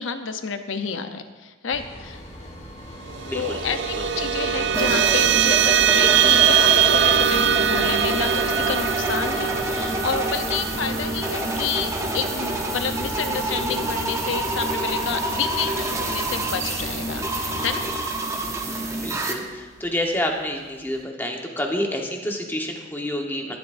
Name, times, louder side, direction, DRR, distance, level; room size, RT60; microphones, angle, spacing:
voice 1, 0.0-2.2 3.3-17.8, left 6 dB, 85° left, 8 dB, 0.8 m, -29 dB
sound 1, 1.7-18.0, left 1 dB, 35° left, 1.8 m, -36 dB
sound 2, 3.1-13.9, right 8 dB, 60° right, 0.5 m, -22 dB
voice 2, 3.2-3.6 19.0-23.6, left 1 dB, 10° left, 1 dB, 1.2 m, -28 dB
sound 3, 4.7-19.3, right 2 dB, 15° right, 0.9 m, -28 dB
18.0 x 11.5 x 2.6 m, 1.3 s
head